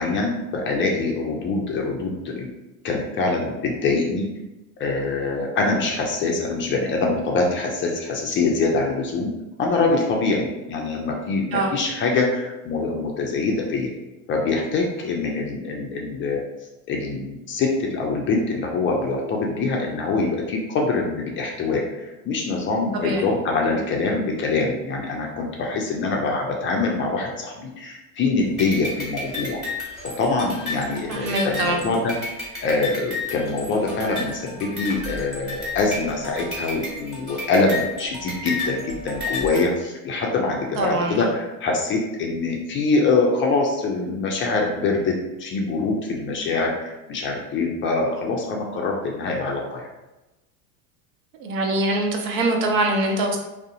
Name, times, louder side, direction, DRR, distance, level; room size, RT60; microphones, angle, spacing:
voice 1, 0.0-2.5 2.8-4.3 4.8-9.3 9.6-13.9 14.3-16.4 16.9-29.6 30.0-32.1 32.6-45.1 45.4-49.9, left 3 dB, 30° left, 0 dB, 0.4 m, -24 dB
voice 2, 22.9-23.3 23.6-23.7 31.1-31.8 40.7-41.3 51.4-53.4, right 2 dB, 70° right, 2 dB, 0.7 m, -23 dB
sound 1, 28.6-39.6, left 2 dB, ahead, 1.2 m, -32 dB
2.4 x 2.0 x 2.7 m, 0.99 s
hypercardioid pair, 90°, 43 cm